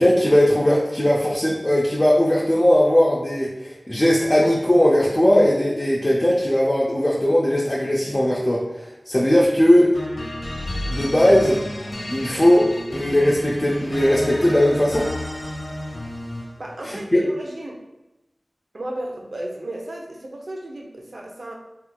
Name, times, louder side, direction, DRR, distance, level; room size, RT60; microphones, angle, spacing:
voice 1, 0.0-9.9 10.9-11.6 12.1-15.1 16.8-17.3, left 1 dB, 30° left, -5 dB, 0.5 m, -18 dB
sound 1, 9.9-16.6, left 1 dB, 85° left, 0.9 m, -31 dB
voice 2, 16.6-17.8 18.7-21.5, right 1 dB, 70° right, 0 dB, 0.5 m, -34 dB
3.2 x 2.9 x 2.2 m, 1.0 s
wide cardioid pair, 50°, 0 cm